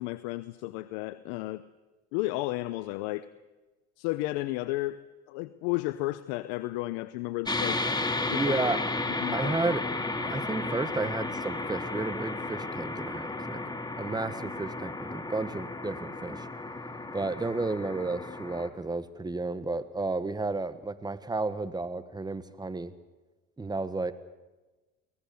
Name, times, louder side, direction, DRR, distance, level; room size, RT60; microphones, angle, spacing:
voice 1, 0.0-1.6 2.1-3.3 4.0-5.0 5.3-7.8 8.3-8.5 9.2-9.5, left 18 dB, 80° left, 14 dB, 0.8 m, -33 dB
sound 1, 7.5-18.7, left 2 dB, 15° left, 2.3 m, -33 dB
voice 2, 8.3-8.8 9.3-9.8 10.2-16.5 17.1-22.9 23.6-24.1, right 3 dB, 15° right, 13 dB, 1.4 m, -32 dB
24.0 x 18.5 x 7.0 m, 1.2 s
supercardioid pair, 90°, 30 cm